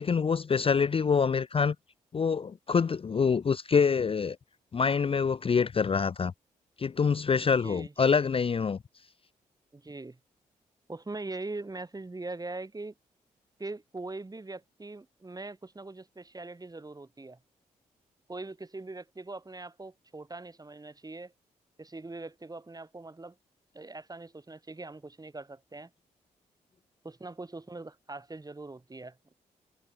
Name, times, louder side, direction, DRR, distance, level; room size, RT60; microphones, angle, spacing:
voice 1, 0.0-1.8 2.1-4.4 4.7-6.3 6.8-8.8, left 6 dB, 35° left, 0.5 m, -26 dB
voice 2, 7.4-8.1 9.7-10.2 10.9-12.9 13.6-17.4 18.3-21.3 21.8-23.3 23.7-25.9 27.0-29.3, right 2 dB, 25° right, 1.7 m, -42 dB
hypercardioid pair, 40°, 17 cm